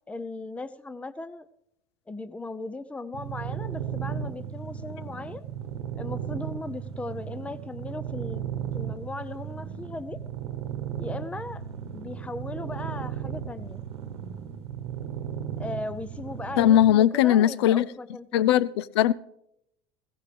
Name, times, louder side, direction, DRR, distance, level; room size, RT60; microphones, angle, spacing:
voice 1, 0.1-1.5 2.1-5.5 5.9-10.2 11.0-11.6 11.9-13.8 15.6-18.5, left 2 dB, 10° left, 15 dB, 0.5 m, -37 dB
sound 1, 3.1-16.9, right 9 dB, 90° right, 1.1 m, -35 dB
sound 2, 8.5-15.3, left 2 dB, 25° left, 2.0 m, -55 dB
voice 2, 16.6-17.8 18.3-19.1, left 12 dB, 85° left, 21 dB, 0.4 m, -19 dB
16.0 x 15.0 x 3.3 m, 0.78 s
supercardioid pair, 95°, 13 cm